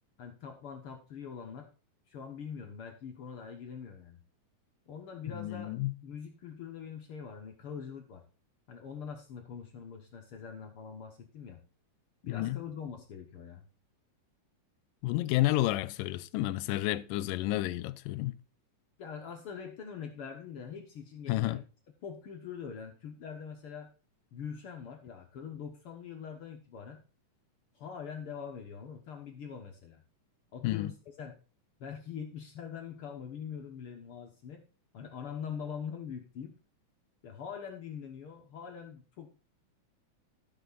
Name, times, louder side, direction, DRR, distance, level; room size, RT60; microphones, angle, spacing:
voice 1, 0.2-1.7 2.1-4.2 4.9-5.8 6.0-8.2 8.7-11.6 12.2-13.6 19.0-21.6 22.0-23.9 24.3-27.0 27.7-30.0 30.5-31.4 31.8-34.6 34.9-36.5 37.2-39.3, left 7 dB, 60° left, 1.4 m, -43 dB
voice 2, 5.3-5.9 12.3-12.6 15.0-18.4 21.3-21.6 30.6-30.9, left 16 dB, 85° left, 2.2 m, -30 dB
12.0 x 6.6 x 4.0 m
omnidirectional pair, 3.8 m